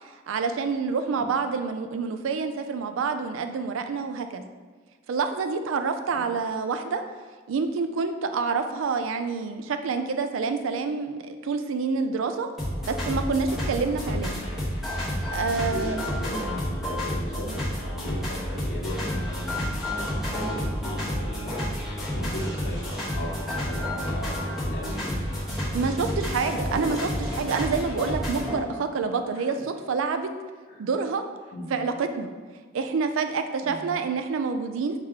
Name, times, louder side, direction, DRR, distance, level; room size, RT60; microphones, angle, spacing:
voice 1, 0.0-4.4 5.1-7.0 7.5-12.5 12.9-14.5 15.3-16.0 25.7-30.3 30.8-31.2 31.7-32.3 32.7-35.0, right 4 dB, 70° right, 8 dB, 0.4 m, -27 dB
sound 1, 12.6-28.6, equal, ahead, 1.1 m, -30 dB
voice 2, 15.5-17.6 17.9-21.5 22.0-26.1 26.7-27.0 29.3-29.6 30.7-30.8 31.5-31.7 33.6-33.9, equal, 80° left, -10 dB, 1.0 m, -37 dB
4.8 x 2.9 x 3.6 m, 1.5 s
head